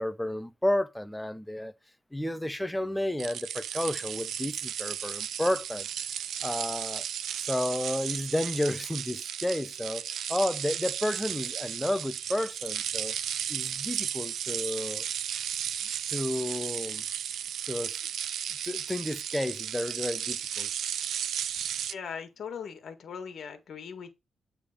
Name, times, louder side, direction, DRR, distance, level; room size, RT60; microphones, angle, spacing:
voice 1, 0.0-1.7 2.1-6.1 6.4-7.1 7.4-13.2 13.5-15.1 16.1-17.0 17.7-17.9 18.7-20.7, left 1 dB, 5° left, 0.5 m, -31 dB
sound 1, 3.2-21.9, right 9 dB, 75° right, 0.4 m, -34 dB
voice 2, 21.9-24.1, left 6 dB, 55° left, 1.6 m, -40 dB
8.5 x 3.5 x 4.9 m
cardioid pair, 135°, 0 cm